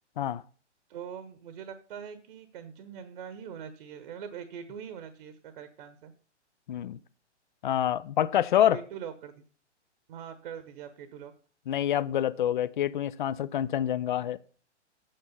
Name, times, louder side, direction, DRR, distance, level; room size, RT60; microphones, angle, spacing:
voice 1, 0.9-6.1 8.7-9.4 10.1-11.3, right 8 dB, 45° right, 1.2 m, -42 dB
voice 2, 6.7-7.0 7.6-8.8 11.7-14.4, left 11 dB, 45° left, 0.6 m, -27 dB
8.9 x 7.5 x 5.5 m
figure-of-eight pair, 120°, 36 cm